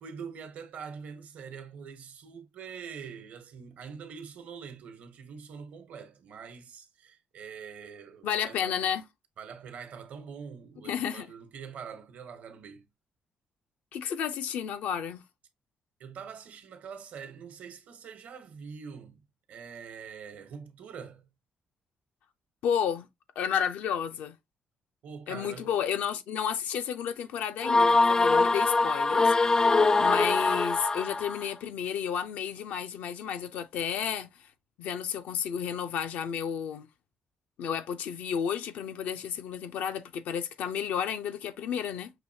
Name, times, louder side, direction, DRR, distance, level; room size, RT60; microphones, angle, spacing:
voice 1, 0.0-8.7 9.4-12.9 16.0-19.2 19.5-21.3 25.0-25.7, right 6 dB, 75° right, 1.1 m, -44 dB
voice 2, 8.2-9.0 10.8-11.3 13.9-15.2 22.6-23.1 23.4-24.4 25.3-34.5 34.8-36.9 37.6-42.1, left 8 dB, 85° left, 0.6 m, -32 dB
sound 1, 27.6-31.4, left 3 dB, 25° left, 0.3 m, -23 dB
5.9 x 2.8 x 2.7 m
supercardioid pair, 60°, 3 cm